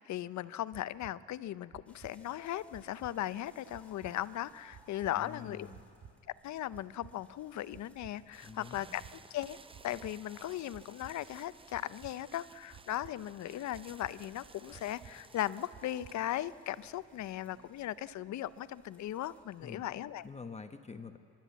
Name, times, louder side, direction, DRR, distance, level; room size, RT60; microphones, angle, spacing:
voice 1, 0.0-5.7 6.4-9.6 9.8-20.3, left 13 dB, 70° left, 17 dB, 0.6 m, -38 dB
sound 1, 0.7-1.1 1.7-2.1 2.7-3.1 3.7-4.1 4.7-5.1 5.7-6.1 6.7-7.1 7.7-8.1 8.7-9.1 9.7-10.1 10.7-11.1 11.7-12.1 12.7-13.1 13.7-14.1 14.7-15.1 15.7-16.1, right 7 dB, 60° right, 1.4 m, -53 dB
sound 2, 1.9-20.3, left 1 dB, 5° left, 3.5 m, -64 dB
voice 2, 5.1-5.9 8.4-9.0 19.6-19.8 20.2-21.2, left 5 dB, 20° left, 7 dB, 1.0 m, -47 dB
sound 3, 8.3-17.9, right 4 dB, 20° right, 0.5 m, -58 dB
29.5 x 12.0 x 8.3 m, 2.3 s
cardioid pair, 90°, 30 cm